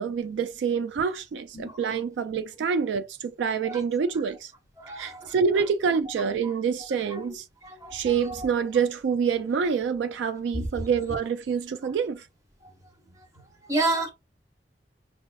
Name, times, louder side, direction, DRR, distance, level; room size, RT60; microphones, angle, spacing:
voice 1, 0.0-4.5 5.0-7.5 7.9-12.3, right 6 dB, 80° right, 0.3 m, -27 dB
voice 2, 4.8-5.3 6.4-6.5 7.1-7.3 7.6-8.5 10.5-10.7 13.7-14.1, right 2 dB, 20° right, 0.9 m, -30 dB
5.1 x 2.4 x 2.3 m
head